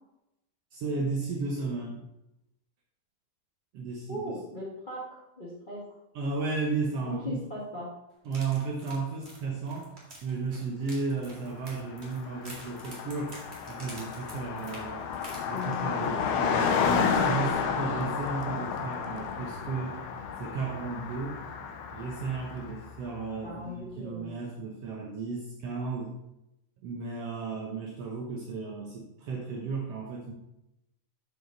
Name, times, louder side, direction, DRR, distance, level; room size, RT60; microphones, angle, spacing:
voice 1, 0.7-2.0 3.7-4.3 6.1-7.4 8.2-9.9 10.2-13.4 13.7-15.1 15.5-20.0 20.4-21.4 21.9-26.2 26.8-30.3, right 4 dB, 70° right, -2 dB, 1.5 m, -34 dB
voice 2, 4.1-5.9 7.1-7.9 15.5-15.9 23.4-24.4, left 1 dB, 30° left, -6 dB, 0.8 m, -38 dB
sound 1, 8.2-16.0 16.4-16.6 16.9-17.0, right 1 dB, 25° right, 1.5 m, -48 dB
Car passing by, 11.6-11.7 11.9-22.9, left 6 dB, 75° left, 2.1 m, -31 dB
11.5 x 5.0 x 3.9 m, 0.88 s
omnidirectional pair, 4.2 m